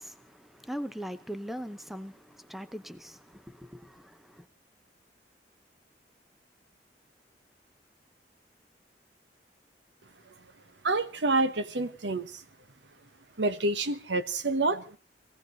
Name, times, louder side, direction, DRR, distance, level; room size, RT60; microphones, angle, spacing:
voice 1, 0.0-4.4, equal, ahead, 0.8 m, -41 dB
voice 2, 10.8-12.4 13.4-15.0, right 2 dB, 85° right, 1.1 m, -28 dB
20.5 x 16.0 x 3.9 m
head